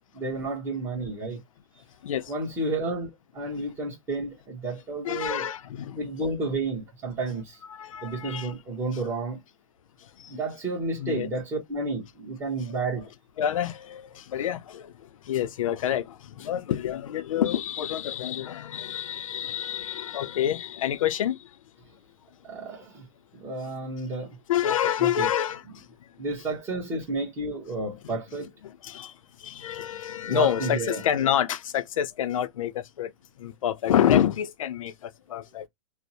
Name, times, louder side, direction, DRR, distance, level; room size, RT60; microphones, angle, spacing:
voice 1, 0.0-1.4 2.3-5.5 6.0-7.6 8.0-9.4 10.3-13.1 14.4-14.5 22.4-23.1 23.3-24.4 25.0-25.3 26.2-28.5 30.3-31.0, right 3 dB, 15° right, 0.8 m, -31 dB
voice 2, 5.0-6.0 7.7-8.5 10.0-10.4 11.0-11.3 13.4-21.5 24.5-25.9 28.0-28.2 28.6-33.1 33.4-35.7, left 10 dB, 85° left, 0.5 m, -28 dB
2.5 x 2.0 x 2.7 m
hypercardioid pair, 160°, 17 cm